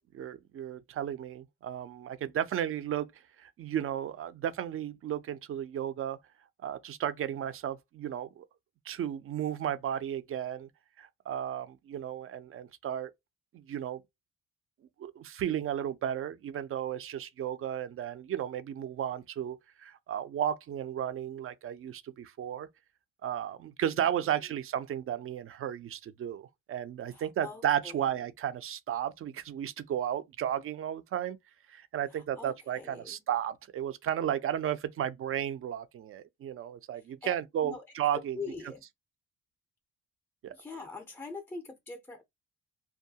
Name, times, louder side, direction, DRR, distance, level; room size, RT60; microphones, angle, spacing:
voice 1, 0.0-3.1 3.4-6.2 6.6-8.5 8.9-10.7 11.0-13.1 13.5-14.0 15.0-22.7 23.2-31.4 31.7-38.4 40.4-40.5, right 10 dB, 45° right, 0.4 m, -34 dB
voice 2, 24.0-24.4 27.1-28.0 32.1-33.2 37.2-37.4 37.6-37.8 38.3-38.8 40.5-42.2, left 4 dB, 10° left, 0.4 m, -43 dB
2.3 x 2.2 x 2.7 m
cardioid pair, 90°, 30 cm